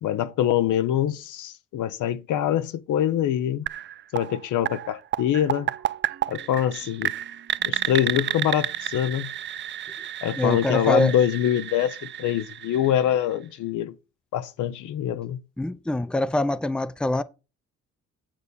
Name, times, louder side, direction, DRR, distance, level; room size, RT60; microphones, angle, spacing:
voice 1, 0.0-3.7 4.1-5.7 6.3-7.1 7.7-9.3 10.2-13.9 14.3-15.4, left 11 dB, 80° left, 0.9 m, -24 dB
sound 1, 3.7-13.5, right 11 dB, 40° right, 0.4 m, -31 dB
sound 2, 5.4-10.1, right 11 dB, 65° right, 1.9 m, -51 dB
voice 2, 10.4-11.1 15.6-17.2, left 1 dB, 5° left, 0.6 m, -24 dB
9.0 x 4.0 x 6.8 m
cardioid pair, 90°, 30 cm